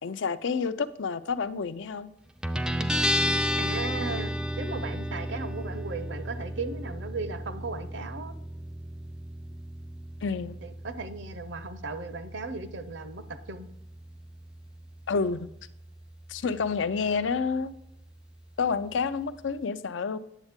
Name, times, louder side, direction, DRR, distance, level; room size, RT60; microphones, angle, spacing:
voice 1, 0.0-2.1 10.2-10.6 15.1-15.5 16.3-17.7 18.6-20.2, left 5 dB, 80° left, 13 dB, 0.5 m, -29 dB
Guitar, 2.4-19.6, equal, 5° right, 0.3 m, -34 dB
voice 2, 3.6-8.3 10.6-13.7, right 3 dB, 70° right, 10 dB, 0.7 m, -36 dB
9.1 x 7.2 x 3.5 m, 0.79 s
head